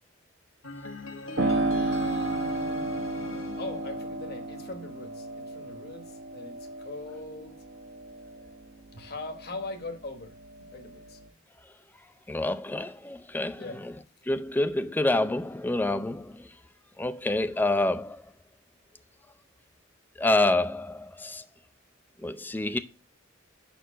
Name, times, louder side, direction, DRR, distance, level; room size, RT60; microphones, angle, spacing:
sound 1, 0.6-4.7, left 2 dB, 75° left, 0.9 m, -41 dB
voice 1, 1.3-2.9 3.6-7.6 8.9-11.2 13.5-13.8, left 2 dB, 50° left, 1.1 m, -41 dB
Piano, 1.4-9.8 10.2-11.3, right 2 dB, 60° right, 1.0 m, -33 dB
voice 2, 12.3-13.6 14.3-16.5 17.0-18.2 20.2-21.4 22.2-22.8, left 2 dB, 10° left, 0.4 m, -27 dB
5.5 x 4.5 x 5.0 m
head